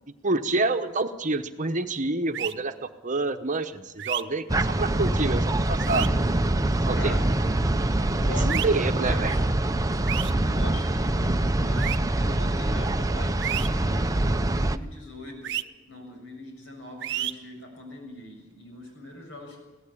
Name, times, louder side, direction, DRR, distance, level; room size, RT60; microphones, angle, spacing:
voice 1, 0.2-6.1 6.9-7.2 8.4-9.3, right 3 dB, 40° right, 8 dB, 1.0 m, -27 dB
sound 1, 2.3-2.5 4.0-4.2 5.8-6.1 8.5-8.7 10.1-10.3 11.8-12.0 13.4-13.7 15.4-15.6 17.0-17.3, right 12 dB, 60° right, 0.7 m, -30 dB
sound 2, 4.5-14.8, right 1 dB, 15° right, 0.6 m, -24 dB
voice 2, 7.0-7.5 8.0-9.4 10.4-15.6 15.9-19.6, left 2 dB, 70° left, 3 dB, 6.9 m, -41 dB
23.0 x 16.5 x 8.5 m, 1.2 s
head